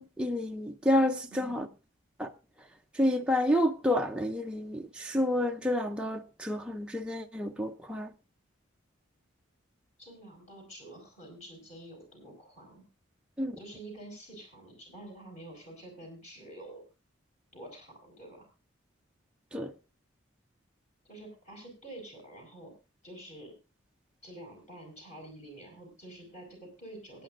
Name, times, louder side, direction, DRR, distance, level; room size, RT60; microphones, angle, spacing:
voice 1, 0.0-1.7 2.2-2.3 3.0-8.1 13.4-13.6 19.5-19.7, left 1 dB, 5° right, 0.5 m, -29 dB
voice 2, 1.3-1.7 10.0-12.8 13.6-16.8 17.5-18.5 21.0-22.7 23.0-23.5 24.2-27.2, right 1 dB, 35° left, 5.1 m, -48 dB
23.0 x 9.2 x 2.5 m
head